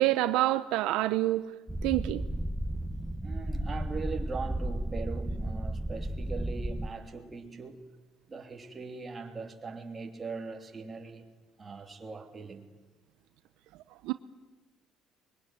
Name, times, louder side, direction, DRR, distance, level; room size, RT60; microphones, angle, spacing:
voice 1, 0.0-1.5 1.8-2.2 14.0-14.1, right 16 dB, 85° right, 0.8 m, -26 dB
sound 1, 1.7-6.9, right 1 dB, 10° right, 0.9 m, -33 dB
voice 2, 3.2-7.9 8.3-11.3 11.6-12.7, right 4 dB, 25° right, 3.1 m, -40 dB
24.0 x 22.5 x 9.3 m
cardioid pair, 120°, 0 cm